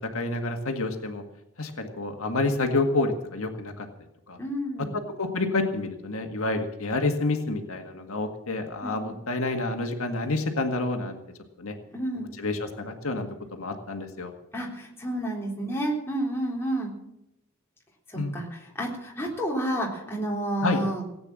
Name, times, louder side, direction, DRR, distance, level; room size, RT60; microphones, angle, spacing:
voice 1, 0.0-1.2 1.6-3.9 4.3-4.4 5.2-11.2 11.6-11.8 12.4-14.3 18.2-18.3 20.6-20.8, left 2 dB, 70° left, 4 dB, 1.8 m, -28 dB
voice 2, 4.4-4.9 8.8-9.1 11.9-12.4 14.5-16.9 18.1-21.0, right 1 dB, 10° left, -3 dB, 3.7 m, -30 dB
18.0 x 8.9 x 7.6 m, 0.83 s
head